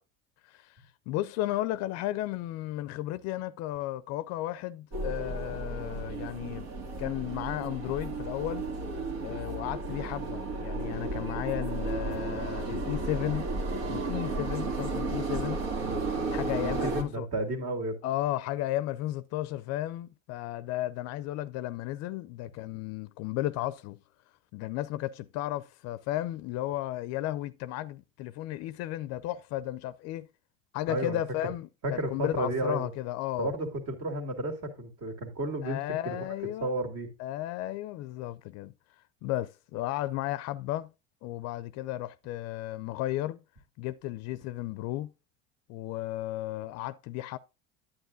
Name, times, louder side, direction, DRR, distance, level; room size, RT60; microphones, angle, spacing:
voice 1, 0.4-6.7 7.0-8.7 9.2-13.5 13.9-15.6 16.3-17.3 18.0-24.0 24.5-30.3 30.7-33.5 35.6-36.7 37.2-38.7 39.2-40.9 41.2-43.4 43.8-45.1 45.7-47.4, left 14 dB, 55° left, 0.4 m, -34 dB
sound 1, 4.9-17.0, right 3 dB, 80° right, 2.0 m, -33 dB
voice 2, 16.6-18.0 30.9-31.2 31.8-32.9 33.4-36.2 36.6-37.1, right 1 dB, 50° right, 2.3 m, -32 dB
9.3 x 8.7 x 2.5 m
supercardioid pair, 100°, 31 cm